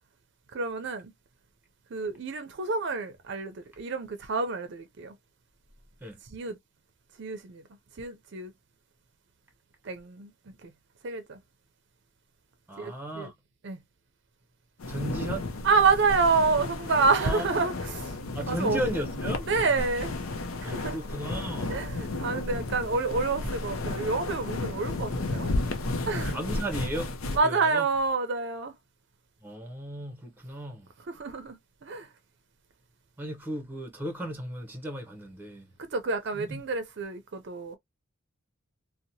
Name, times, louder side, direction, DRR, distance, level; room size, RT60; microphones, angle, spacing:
voice 1, 0.5-1.1 1.9-5.1 6.3-6.6 7.2-7.6 8.0-8.5 9.8-10.3 10.6-10.7 11.0-11.4 12.8-13.3 13.6-13.8 15.6-18.2 18.5-18.8 19.5-20.1 20.6-21.0 21.7-25.5 26.1-26.4 27.3-28.7 31.1-32.1 35.8-37.8, right 4 dB, 55° right, 0.5 m, -28 dB
voice 2, 12.7-13.3 14.9-15.5 17.2-17.4 18.3-19.5 20.6-21.8 26.0-27.1 27.4-27.9 29.4-30.9 33.2-35.7 36.3-36.6, right 1 dB, 10° right, 0.7 m, -35 dB
sound 1, 14.8-27.4, left 2 dB, 80° left, 0.6 m, -33 dB
2.8 x 2.1 x 2.7 m
head